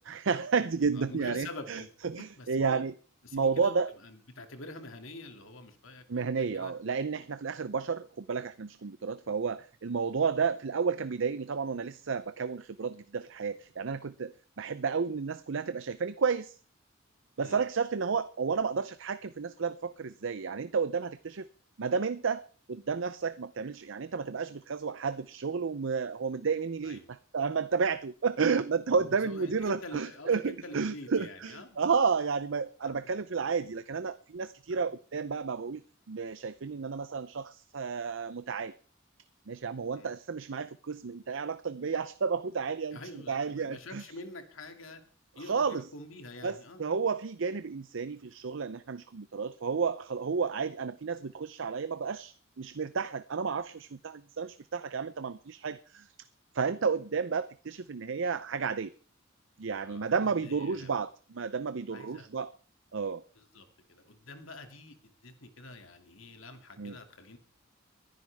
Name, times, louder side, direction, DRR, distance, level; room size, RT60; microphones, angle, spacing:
voice 1, 0.0-2.9 3.3-3.9 6.1-16.6 17.4-21.5 21.8-22.4 22.7-35.8 36.1-38.7 39.5-43.0 43.3-44.0 45.4-45.9 46.4-56.1 56.5-58.9 59.6-62.5 62.9-63.2 66.8-67.0, right 5 dB, 65° right, 13 dB, 0.6 m, -32 dB
voice 2, 1.0-1.9 2.2-2.8 3.2-6.7 17.4-17.6 26.8-27.1 28.9-31.8 32.8-33.1 34.7-34.9 39.9-40.1 42.9-45.0 45.4-46.8 59.8-61.1 61.9-62.3 63.3-65.0 65.2-67.4, left 2 dB, 80° left, 6 dB, 2.5 m, -46 dB
23.0 x 10.5 x 3.5 m, 0.41 s
head